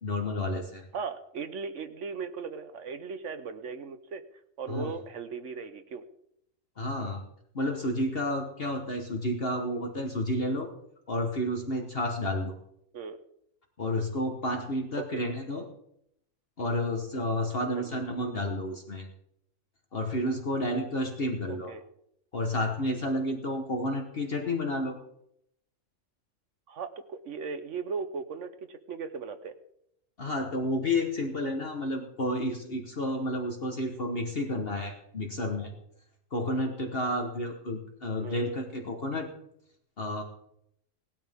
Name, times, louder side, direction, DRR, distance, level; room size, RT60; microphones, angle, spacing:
voice 1, 0.0-0.8 4.7-4.9 6.8-7.2 7.5-10.7 11.1-12.5 13.8-15.6 16.6-19.1 19.9-21.7 22.3-25.0 30.2-35.7 36.3-39.3 40.0-40.2, left 1 dB, 45° left, 3 dB, 1.5 m, -31 dB
voice 2, 0.9-4.2 4.6-6.0 12.9-13.2 15.1-15.2 17.8-17.9 21.5-21.8 26.7-29.5 38.2-38.4, right 5 dB, 65° right, 10 dB, 1.2 m, -37 dB
19.0 x 12.0 x 3.6 m, 0.75 s
omnidirectional pair, 1.4 m